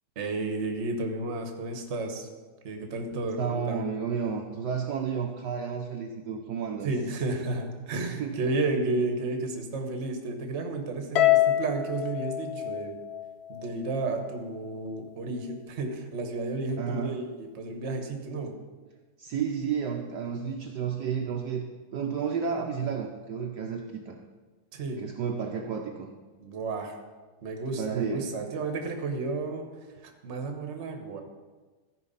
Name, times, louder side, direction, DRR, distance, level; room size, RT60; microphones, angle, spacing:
voice 1, 0.2-2.3 2.6-3.8 6.8-12.9 13.5-18.5 24.7-25.0 26.4-27.0 27.4-29.7 30.0-31.2, right 3 dB, 40° right, 4 dB, 1.2 m, -32 dB
voice 2, 3.4-6.9 8.2-8.3 16.8-17.2 19.2-21.6 21.9-24.2 25.0-26.1 27.8-28.3, right 6 dB, 65° right, 1 dB, 1.2 m, -31 dB
Harp, 11.2-13.6, left 13 dB, 70° left, 1.0 m, -25 dB
14.0 x 4.9 x 5.5 m, 1.3 s
omnidirectional pair, 2.2 m